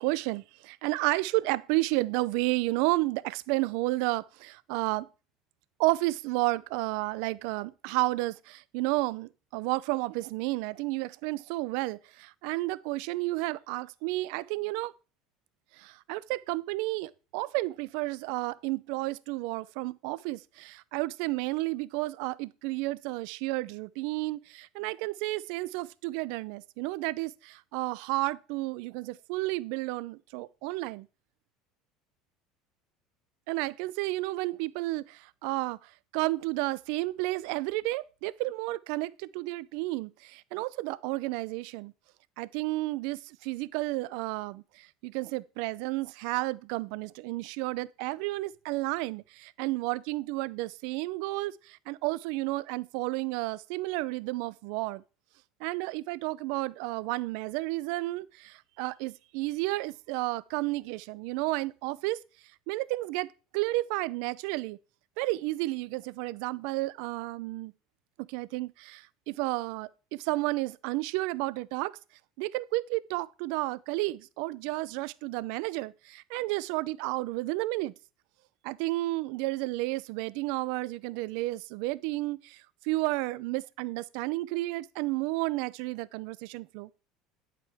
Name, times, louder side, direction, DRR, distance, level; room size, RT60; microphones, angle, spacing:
voice 1, 0.0-5.1 5.8-14.9 15.8-31.1 33.5-41.9 42.4-55.0 55.6-62.2 62.7-63.3 63.5-64.8 65.2-67.7 68.3-71.9 72.4-77.9 78.6-86.9, right 20 dB, 75° right, 0.6 m, -32 dB
11.0 x 7.6 x 3.5 m
supercardioid pair, 95°, 0 cm